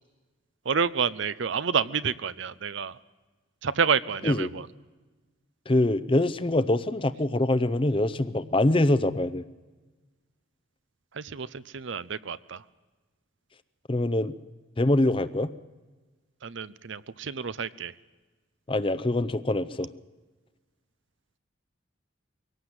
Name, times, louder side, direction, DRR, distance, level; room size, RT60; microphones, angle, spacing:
voice 1, 0.7-3.0 3.6-4.6 11.2-12.6 16.4-17.9, right 6 dB, 65° right, 16 dB, 0.6 m, -29 dB
voice 2, 4.2-4.5 5.7-9.4 13.9-14.3 14.8-15.5 18.7-19.9, left 1 dB, 25° left, 14 dB, 0.6 m, -24 dB
23.0 x 18.0 x 7.9 m, 1.3 s
head